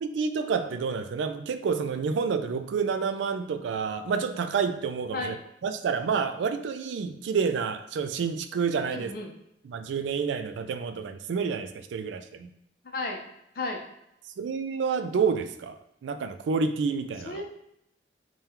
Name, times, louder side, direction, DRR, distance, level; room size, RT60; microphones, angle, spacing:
voice 1, 0.0-5.4 5.6-9.1 9.7-12.5 14.4-15.8 16.0-17.4, right 5 dB, 80° right, 9 dB, 0.3 m, -29 dB
voice 2, 8.9-9.3 12.9-13.3 13.6-13.8 17.2-17.4, left 2 dB, 55° left, 2 dB, 0.6 m, -33 dB
3.6 x 2.3 x 4.3 m, 0.81 s
head